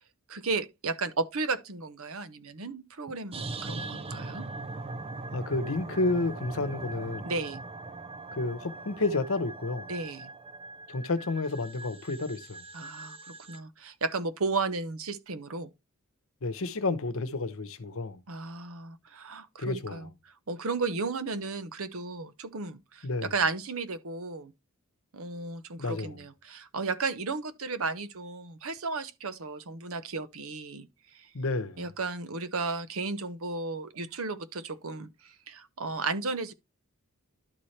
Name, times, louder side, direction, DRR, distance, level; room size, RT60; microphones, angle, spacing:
voice 1, 0.3-4.5 7.2-7.6 9.9-10.3 12.7-13.2 13.5-15.7 18.3-24.5 25.1-30.9 31.1-31.3 31.8-36.5, right 3 dB, 65° right, 0.9 m, -34 dB
sound 1, 3.3-13.6, right 3 dB, 25° right, 0.5 m, -41 dB
voice 2, 5.3-7.3 8.4-9.9 10.9-12.6 16.4-18.2 19.6-20.1 23.0-23.3 25.8-26.2 31.3-31.8, left 3 dB, 65° left, 0.9 m, -30 dB
12.0 x 4.3 x 3.2 m
head